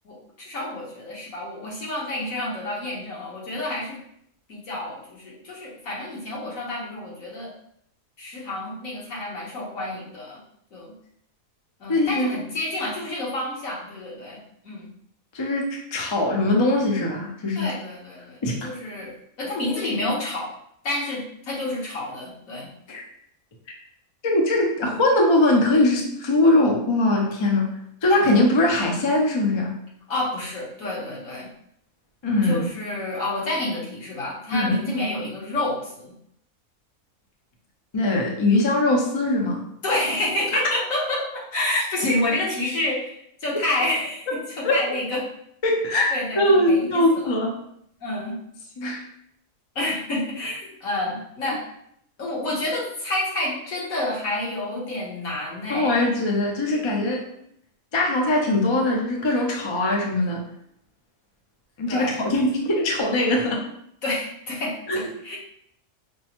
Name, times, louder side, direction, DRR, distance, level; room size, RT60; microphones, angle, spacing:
voice 1, 0.0-4.0 4.5-7.5 8.2-10.4 10.7-10.9 11.8-14.9 17.5-20.5 20.8-22.7 30.1-31.5 32.4-36.1 39.8-45.3 46.1-47.3 48.0-48.4 49.7-51.6 52.2-56.1 61.9-62.2 64.0-65.4, left 1 dB, 70° left, -4 dB, 1.5 m, -29 dB
voice 2, 11.9-12.3 15.3-17.7 18.4-18.7 22.9-23.0 24.2-27.7 28.0-29.7 32.2-32.7 34.5-34.7 37.9-39.6 44.6-44.8 45.6-46.1 46.4-47.5 48.8-49.0 55.7-57.2 57.9-60.4 61.8-63.6 64.9-65.0, left 2 dB, 40° left, 0 dB, 0.3 m, -21 dB
5.2 x 2.1 x 2.9 m, 0.72 s
omnidirectional pair, 1.5 m